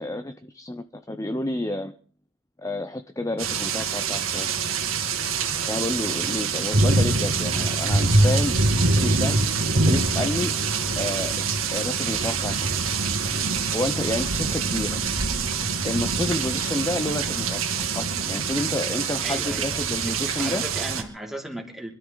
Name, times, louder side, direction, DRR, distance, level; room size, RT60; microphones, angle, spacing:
voice 1, 0.0-1.9 2.6-4.5 5.7-8.6 9.0-9.4 9.7-10.5 11.0-11.4 11.7-12.5 13.7-15.0 15.8-17.6 17.9-20.6, left 1 dB, 15° left, 8 dB, 0.7 m, -29 dB
sound 1, 3.4-21.0, right 4 dB, 80° right, 2.3 m, -24 dB
voice 2, 19.2-21.9, right 1 dB, ahead, 0 dB, 2.9 m, -35 dB
25.0 x 13.0 x 4.0 m, 0.41 s
head